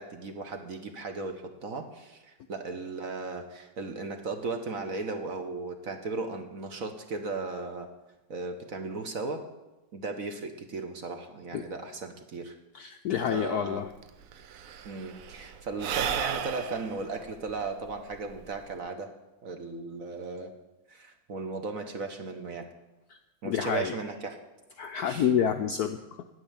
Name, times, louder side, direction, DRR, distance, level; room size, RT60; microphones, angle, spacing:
voice 1, 0.0-7.9 8.3-9.4 9.9-12.5 13.3-13.8 14.8-19.1 19.4-20.5 20.9-22.7 23.4-24.4 25.1-25.3, right 3 dB, 50° right, 6 dB, 1.3 m, -36 dB
voice 2, 12.7-13.9 23.4-23.9 24.8-26.2, left 8 dB, 70° left, 7 dB, 0.9 m, -28 dB
Sigh / Breathing, 13.7-13.8 14.0-18.8, right 8 dB, 65° right, 0.8 m, -35 dB
9.6 x 9.2 x 8.8 m, 1.0 s
omnidirectional pair, 2.2 m